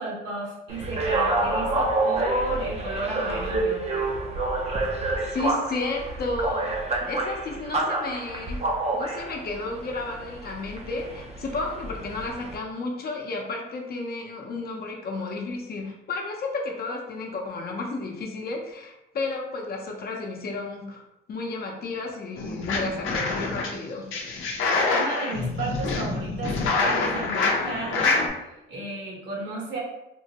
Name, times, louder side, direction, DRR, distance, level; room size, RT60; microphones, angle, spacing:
voice 1, 0.0-3.8 24.9-28.3 28.7-29.8, right 2 dB, 65° right, -3 dB, 1.2 m, -32 dB
sound 1, 0.7-12.6, right 2 dB, 30° right, 0.5 m, -28 dB
voice 2, 5.3-6.7 7.0-8.6 8.9-21.0 21.3-24.1, left 3 dB, 50° left, 1 dB, 0.7 m, -32 dB
sound 2, 22.4-23.7 24.1-28.3, left 3 dB, 90° left, 0.6 m, -26 dB
3.6 x 2.1 x 2.8 m, 0.91 s
cardioid pair, 90°, 20 cm